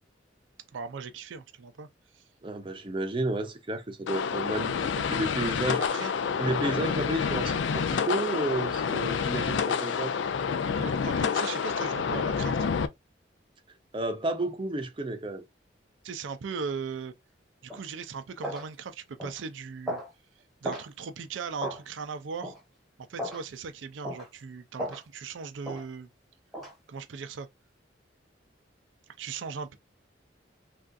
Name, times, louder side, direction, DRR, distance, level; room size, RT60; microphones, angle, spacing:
voice 1, 0.7-1.9 2.1-2.2 5.9-6.1 6.8-7.0 10.6-12.6 16.0-17.1 17.6-20.0 20.6-22.5 23.1-26.1 26.9-27.5 29.2-29.8, right 5 dB, 85° right, 0.4 m, -38 dB
voice 2, 2.4-5.8 6.4-10.1 13.9-15.4, right 2 dB, 30° right, 0.6 m, -32 dB
sound 1, 4.1-12.9, left 6 dB, 80° left, 0.4 m, -28 dB
sound 2, 17.7-17.9 18.4-18.7 19.2-19.4 19.9-20.1 20.6-20.9 21.6-21.8 22.4-22.6 23.2-23.4 24.0-24.3 24.8-25.0 25.6-25.8 26.5-26.7, equal, ahead, 1.0 m, -35 dB
3.4 x 2.4 x 2.5 m
head